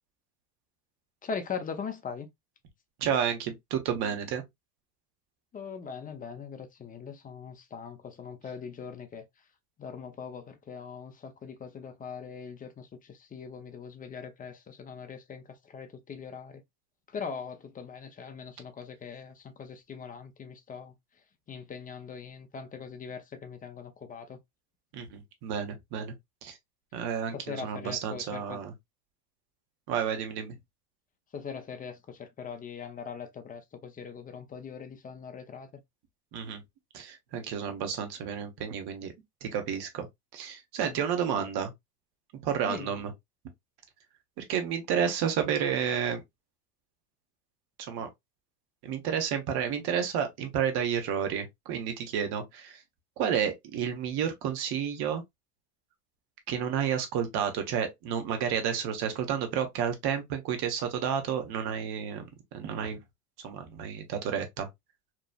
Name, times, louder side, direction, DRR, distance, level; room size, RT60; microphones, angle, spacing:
voice 1, 1.2-2.3 5.5-9.3 9.8-16.6 17.1-20.9 21.5-24.4 27.3-28.6 31.3-35.8 40.8-41.0 42.6-42.9, left 6 dB, 20° left, 0.5 m, -41 dB
voice 2, 3.0-4.4 24.9-26.1 26.4-26.6 26.9-28.7 29.9-30.6 36.3-36.6 36.9-39.1 39.4-40.1 40.3-41.7 42.4-43.1 44.4-46.2 47.9-48.1 48.8-52.8 53.2-55.2 56.5-63.0 63.4-64.7, right 8 dB, 55° right, 1.1 m, -31 dB
3.0 x 2.3 x 2.2 m
hypercardioid pair, 90°, 47 cm